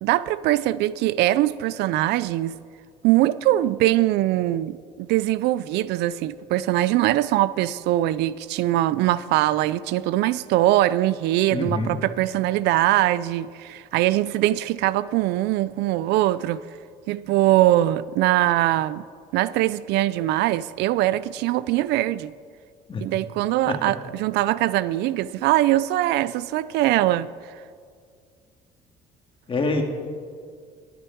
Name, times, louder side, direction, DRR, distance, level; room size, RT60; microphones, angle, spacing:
voice 1, 0.0-2.6 3.0-16.7 17.1-19.0 19.3-22.3 23.0-27.3, right 15 dB, 85° right, 0.4 m, -22 dB
voice 2, 11.5-11.9 22.9-23.0 23.7-23.8 29.5-29.8, left 3 dB, 30° left, 1.9 m, -25 dB
19.5 x 8.1 x 4.6 m
cardioid pair, 110°, 17 cm